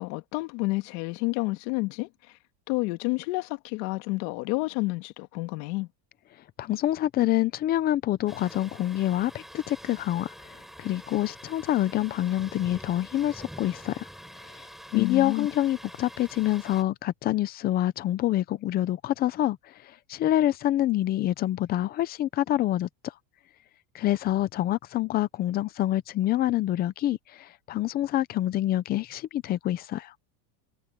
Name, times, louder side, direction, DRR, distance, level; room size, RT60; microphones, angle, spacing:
voice 1, 0.0-2.4 2.7-5.9 14.9-15.5, left 24 dB, 65° left, 1.9 m, -29 dB
voice 2, 6.6-14.1 14.4-14.5 14.9-22.9 23.9-30.1, left 13 dB, 20° left, 0.3 m, -26 dB
Thunder, 8.3-16.8, equal, ahead, 3.9 m, -46 dB
cardioid pair, 150°, 49 cm